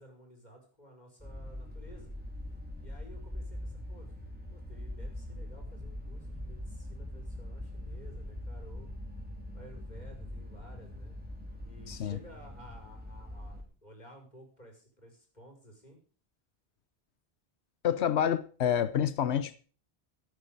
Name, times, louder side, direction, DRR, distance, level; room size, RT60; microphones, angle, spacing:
voice 1, 0.0-2.1 2.8-4.1 4.5-8.9 9.5-11.2 11.6-16.0, equal, 40° left, 5.6 m, -54 dB
sound 1, 1.2-13.6, left 1 dB, 10° right, 3.7 m, -42 dB
voice 2, 11.9-12.2 17.8-19.6, left 9 dB, 80° left, 1.0 m, -28 dB
14.5 x 9.7 x 5.3 m
omnidirectional pair, 1.1 m